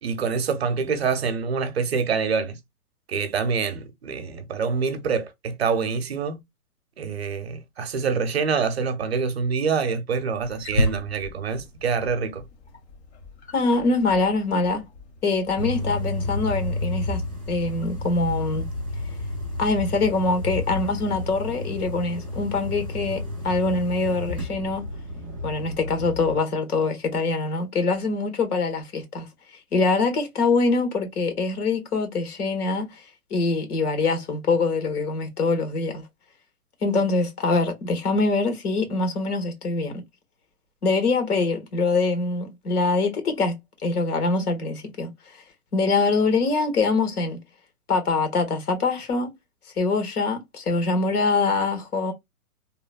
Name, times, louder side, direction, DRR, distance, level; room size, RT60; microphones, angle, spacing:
voice 1, 0.0-2.6 3.1-6.4 7.0-12.4, right 5 dB, 45° right, 0.6 m, -26 dB
Wild animals, 10.3-18.8, left 1 dB, 45° left, 0.9 m, -35 dB
voice 2, 13.5-14.8 15.2-17.2 17.5-18.7 19.6-24.8 25.4-29.3 29.7-33.0 33.3-36.0 36.8-40.0 40.8-45.4 45.7-47.4 47.9-49.3 49.8-52.1, left 3 dB, 75° left, 1.4 m, -24 dB
sound 1, 15.5-26.4, left 1 dB, 25° left, 0.4 m, -31 dB
2.9 x 2.1 x 2.3 m
hypercardioid pair, 165°, 45 cm